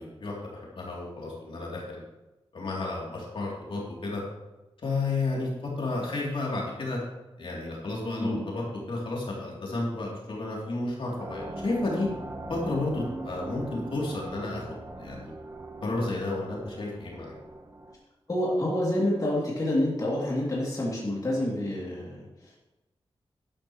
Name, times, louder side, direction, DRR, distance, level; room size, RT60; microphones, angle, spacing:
voice 1, 0.0-2.0 2.5-4.2 4.8-7.0 7.4-12.1 12.5-14.6 15.0-15.3 15.8-17.4, left 2 dB, 65° left, -4 dB, 3.1 m, -32 dB
sound 1, 11.2-17.9, right 2 dB, 30° right, 1.2 m, -41 dB
voice 2, 18.3-22.6, left 1 dB, 35° left, -5 dB, 2.8 m, -28 dB
12.0 x 11.5 x 3.2 m, 1.0 s
wide cardioid pair, 145°, 10 cm